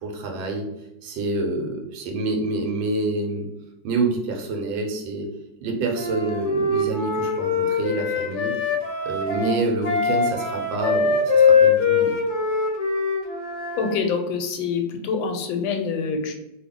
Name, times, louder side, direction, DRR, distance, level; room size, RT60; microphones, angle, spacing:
voice 1, 0.0-0.7 1.0-3.5 3.8-5.3 5.6-8.6 9.1-12.1, right 2 dB, 80° right, 2 dB, 1.4 m, -27 dB
Wind instrument woodwind instrument, 5.9-13.9, left 5 dB, 55° left, 0.8 m, -22 dB
voice 2, 13.7-16.3, left 5 dB, 85° left, 4 dB, 1.4 m, -26 dB
3.1 x 2.3 x 3.5 m, 0.92 s
omnidirectional pair, 2.1 m